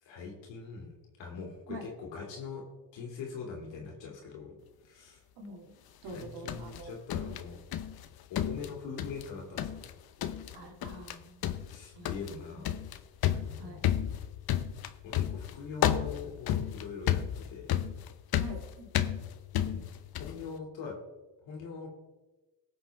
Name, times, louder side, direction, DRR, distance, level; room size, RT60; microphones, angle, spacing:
voice 1, 0.0-2.6 2.9-4.6 4.8-5.2 6.1-7.6 8.3-9.8 11.7-12.7 13.3-14.0 15.0-17.7 19.5-21.0 21.4-21.9, left 5 dB, 85° left, 0 dB, 2.5 m, -42 dB
voice 2, 5.4-5.7 6.0-6.9 10.5-11.6 12.0-12.2 12.5-12.8 13.6-13.8 18.4-19.1, right 1 dB, 75° right, 1 dB, 2.6 m, -46 dB
sound 1, 6.1-8.1 8.4-9.3 9.6-9.9 10.2-10.6 10.8-11.2 11.4-20.4, left 11 dB, 55° left, 0.8 m, -32 dB
18.5 x 6.3 x 3.5 m, 1.2 s
supercardioid pair, 75°, 43 cm